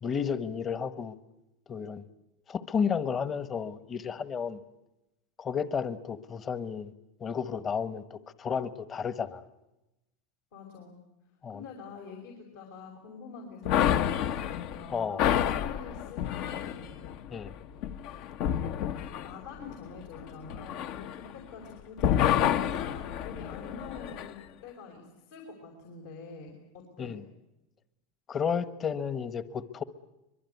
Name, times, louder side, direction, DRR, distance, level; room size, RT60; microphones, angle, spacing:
voice 1, 0.0-1.1 1.7-2.0 2.5-4.6 5.4-6.9 7.2-9.4 11.4-11.6 14.9-15.3 17.3-17.5 27.0-27.2 28.3-29.8, left 6 dB, 30° left, 13 dB, 1.3 m, -32 dB
voice 2, 10.5-11.0 11.5-17.0 19.2-27.2, left 4 dB, 75° left, 1 dB, 5.6 m, -46 dB
sound 1, 13.7-21.7 22.0-24.3, left 10 dB, 60° left, 1.1 m, -29 dB
24.0 x 22.0 x 9.5 m, 0.95 s
supercardioid pair, 115°, 0 cm